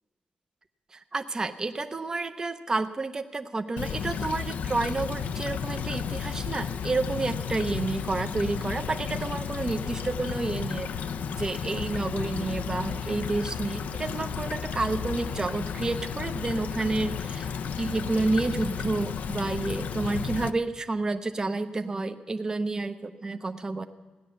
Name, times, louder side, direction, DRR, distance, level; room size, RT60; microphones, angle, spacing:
voice 1, 0.9-11.0 11.4-17.5 17.8-23.9, right 3 dB, 25° right, 7 dB, 0.7 m, -30 dB
Stream / Trickle dribble, 3.8-20.5, left 7 dB, 70° left, 0.6 m, -33 dB
16.5 x 10.5 x 6.9 m, 1.3 s
wide cardioid pair, 135°, 3 cm